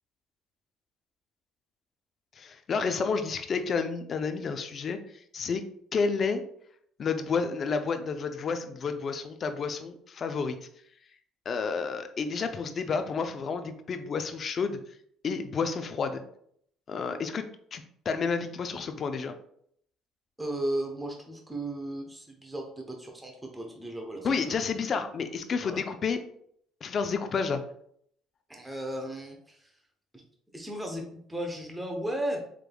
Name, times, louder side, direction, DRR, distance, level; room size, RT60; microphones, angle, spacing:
voice 1, 2.4-5.0 5.3-5.6 5.9-6.4 7.0-10.6 11.5-14.8 15.2-16.2 16.9-19.4 24.2-26.2 26.8-27.6, left 5 dB, 40° left, 8 dB, 0.5 m, -30 dB
voice 2, 20.4-24.5 25.6-25.8 28.5-29.7 30.5-31.0 31.3-32.4, right 1 dB, 10° right, 1 dB, 0.8 m, -35 dB
4.8 x 3.3 x 2.3 m, 0.66 s
cardioid pair, 110°, 0 cm